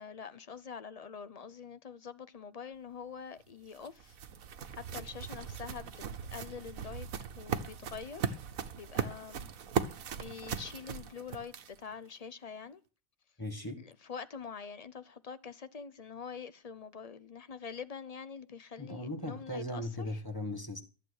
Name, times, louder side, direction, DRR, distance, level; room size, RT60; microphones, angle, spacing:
voice 1, 0.0-4.2 4.7-6.0 6.3-8.4 8.8-9.5 10.2-12.8 13.8-20.2, left 6 dB, 40° left, 0.6 m, -45 dB
sound 1, 3.4-11.9, right 7 dB, 85° right, 1.4 m, -38 dB
voice 2, 13.4-13.8 18.8-20.8, left 1 dB, 15° left, 1.6 m, -38 dB
14.5 x 7.9 x 6.4 m
omnidirectional pair, 1.4 m